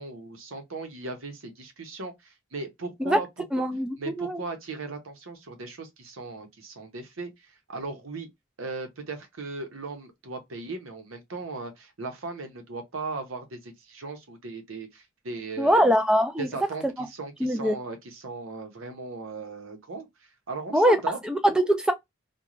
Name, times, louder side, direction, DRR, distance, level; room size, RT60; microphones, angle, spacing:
voice 1, 0.0-3.3 4.0-8.3 8.6-16.0 16.4-20.1 20.5-21.2, right 3 dB, 75° right, 0.8 m, -37 dB
voice 2, 3.5-4.4 15.6-16.5 16.8-16.9 17.4-17.7 20.7-21.0 21.2-21.9, equal, 5° right, 0.3 m, -22 dB
2.5 x 2.2 x 3.0 m
head